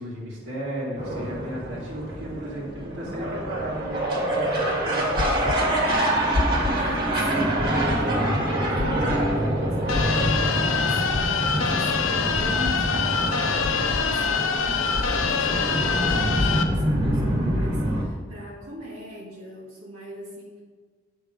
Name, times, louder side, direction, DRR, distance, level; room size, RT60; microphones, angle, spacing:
voice 1, 0.0-5.2, right 1 dB, 70° right, -4 dB, 2.2 m, -34 dB
sound 1, 1.0-18.0, right 1 dB, 50° right, 2.1 m, -26 dB
sound 2, 5.2-5.6 6.3-6.8 7.6-8.0 8.8-9.2 9.9-10.4 11.1-11.5 12.4-12.8 13.6-14.0 14.9-15.3 16.1-16.5, left 3 dB, 25° left, 0.4 m, -28 dB
voice 2, 6.7-20.6, equal, 85° right, -7 dB, 1.7 m, -41 dB
sound 3, 9.9-16.6, left 5 dB, 80° left, 0.6 m, -25 dB
9.7 x 3.5 x 5.1 m, 1.5 s
head